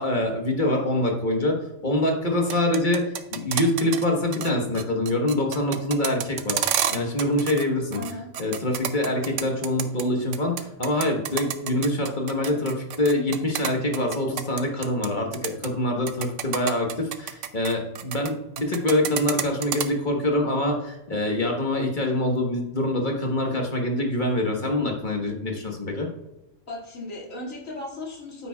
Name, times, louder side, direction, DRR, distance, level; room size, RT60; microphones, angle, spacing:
voice 1, 0.0-1.6 1.8-8.0 8.4-26.1, left 1 dB, 40° left, 1 dB, 1.4 m, -25 dB
sound 1, 2.3-4.0 4.3-4.5 4.7-7.6 7.9-10.0 10.3-15.1 15.3-15.7 16.1-18.3 18.6-19.9, right 9 dB, 75° right, 1.0 m, -29 dB
voice 2, 7.9-8.3 26.7-28.5, left 2 dB, 90° left, -4 dB, 2.6 m, -36 dB
9.2 x 8.8 x 2.3 m, 0.92 s
omnidirectional pair, 1.3 m